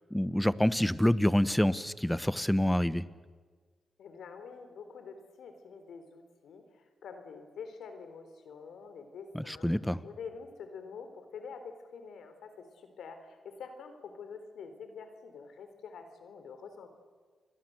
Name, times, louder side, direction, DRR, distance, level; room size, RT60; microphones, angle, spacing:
voice 1, 0.0-3.0 9.3-10.0, left 1 dB, 5° left, 15 dB, 1.1 m, -27 dB
voice 2, 4.0-9.7 10.0-16.9, left 5 dB, 85° left, 8 dB, 3.8 m, -46 dB
29.0 x 22.0 x 7.9 m, 1.5 s
cardioid pair, 60°, 0 cm